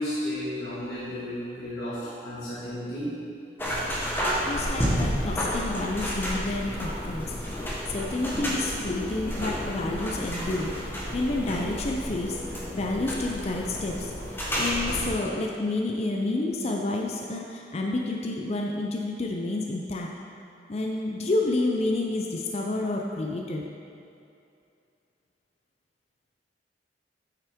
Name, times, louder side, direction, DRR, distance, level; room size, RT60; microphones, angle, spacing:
voice 1, 0.0-3.1, left 1 dB, 60° left, -12 dB, 1.8 m, -33 dB
sound 1, 3.6-15.1, equal, 15° left, 1.1 m, -31 dB
voice 2, 4.4-7.3 7.9-20.1 20.7-23.6, left 2 dB, 40° left, 0 dB, 0.5 m, -29 dB
8.6 x 5.5 x 3.6 m, 2.6 s
head